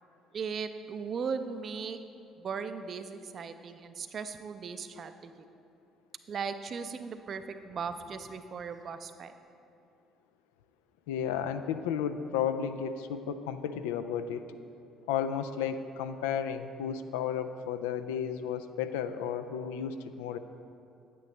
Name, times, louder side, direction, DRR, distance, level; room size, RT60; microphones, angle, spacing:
voice 1, 0.3-2.0 2.4-5.3 6.3-9.3, right 5 dB, 50° right, 9 dB, 0.5 m, -37 dB
voice 2, 11.1-14.5 15.1-20.4, left 8 dB, 75° left, 10 dB, 0.3 m, -33 dB
9.1 x 9.1 x 3.2 m, 2.6 s
hypercardioid pair, 50°, 0 cm